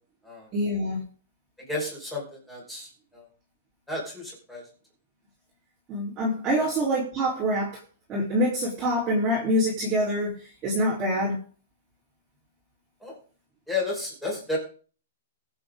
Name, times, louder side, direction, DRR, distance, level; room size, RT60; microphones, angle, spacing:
voice 1, 0.5-1.0 5.9-7.8 8.1-11.4, equal, 15° right, -6 dB, 3.9 m, -25 dB
voice 2, 1.7-3.3 3.9-4.6 6.6-6.7 13.0-13.2 13.7-14.6, left 2 dB, 5° left, -4 dB, 5.3 m, -32 dB
22.0 x 7.9 x 3.8 m, 0.39 s
hypercardioid pair, 175°, 0 cm